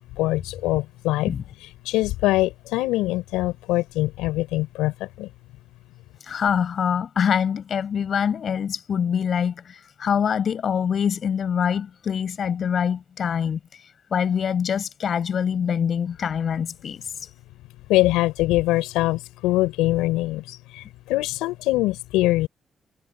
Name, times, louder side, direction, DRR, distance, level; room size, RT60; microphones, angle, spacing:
voice 1, 0.2-1.3 1.6-5.3 17.9-22.5, left 18 dB, 85° left, 4.8 m, -23 dB
voice 2, 6.3-13.6 14.1-17.0, left 7 dB, 65° left, 7.5 m, -24 dB
hypercardioid pair, 45°, 0 cm